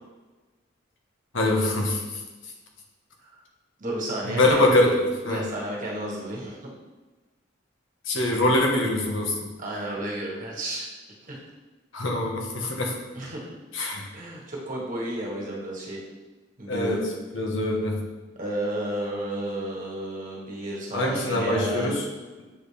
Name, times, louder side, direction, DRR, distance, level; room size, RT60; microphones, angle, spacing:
voice 1, 1.3-2.2 4.2-5.4 8.1-9.4 11.9-12.9 13.7-14.1 16.7-17.0 17.3-18.0 20.9-22.0, left 1 dB, 80° left, 0 dB, 1.2 m, -23 dB
voice 2, 3.8-4.9 5.3-6.7 9.6-10.9 11.3-11.4 13.1-13.4 14.1-16.0 16.6-17.0 18.4-21.9, right 1 dB, 45° right, -3 dB, 1.4 m, -32 dB
7.6 x 4.2 x 3.3 m, 1.2 s
head